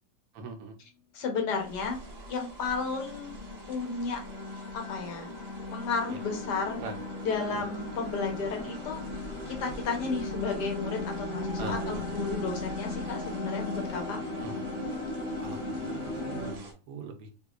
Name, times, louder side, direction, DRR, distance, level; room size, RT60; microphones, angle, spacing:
voice 1, 0.3-0.8 6.1-6.2 6.8-7.0 7.5-7.6 11.6-12.1 14.4-14.6 15.4-17.4, right 4 dB, 70° right, 5 dB, 1.0 m, -41 dB
voice 2, 1.1-2.0 2.3-3.3 3.7-4.2 4.7-5.3 5.7-6.8 7.2-9.0 9.5-14.2, left 4 dB, 80° left, 2 dB, 1.4 m, -33 dB
sound 1, 1.5-16.7, right 2 dB, 45° right, 0.9 m, -46 dB
sound 2, 2.1-16.5, left 2 dB, 55° left, 1.0 m, -37 dB
3.5 x 2.9 x 2.4 m, 0.35 s
omnidirectional pair, 1.7 m